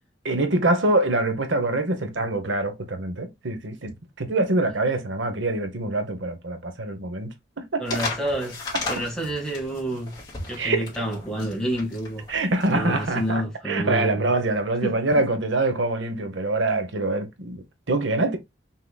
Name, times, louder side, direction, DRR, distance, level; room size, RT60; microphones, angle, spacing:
voice 1, 0.2-8.0 10.6-10.9 12.3-18.4, right 2 dB, 80° right, 1.0 m, -25 dB
sound 1, 7.8-13.3, left 4 dB, 20° left, 2.4 m, -34 dB
voice 2, 7.8-8.6 8.9-10.2 10.5-12.3 12.7-14.3 14.8-15.2, right 1 dB, 5° left, 1.8 m, -29 dB
5.8 x 3.8 x 2.3 m
head